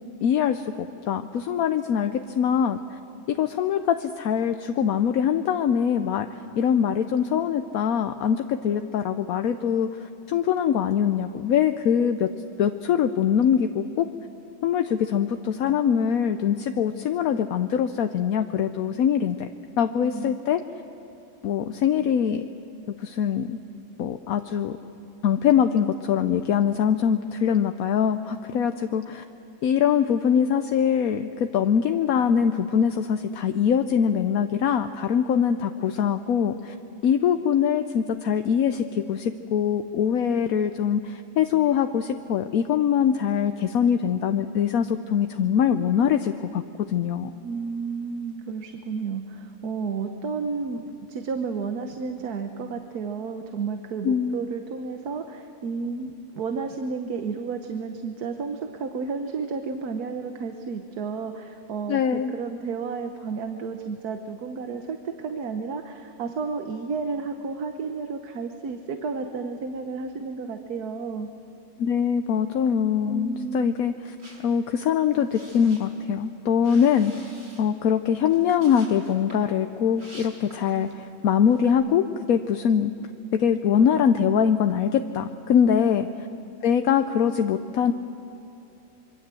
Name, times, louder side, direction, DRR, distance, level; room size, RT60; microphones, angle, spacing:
voice 1, 0.2-3.0 3.3-12.3 12.6-14.1 14.6-19.5 19.8-20.6 21.4-22.4 23.0-23.6 24.0-24.8 25.2-29.2 29.6-36.7 37.0-46.6 46.9-47.3 54.0-54.4 61.9-62.3 71.8-74.1 74.4-77.3 77.6-82.9 83.3-86.1 86.6-87.9, left 8 dB, 75° left, 8 dB, 1.2 m, -23 dB
voice 2, 20.0-20.4 47.4-50.8 51.1-71.3 73.1-73.9 85.6-85.9, right 5 dB, 90° right, 6 dB, 1.6 m, -32 dB
sound 1, 74.1-81.0 81.4-81.7, right 1 dB, 45° right, 5.9 m, -49 dB
25.5 x 23.5 x 7.6 m, 2.9 s
omnidirectional pair, 1.6 m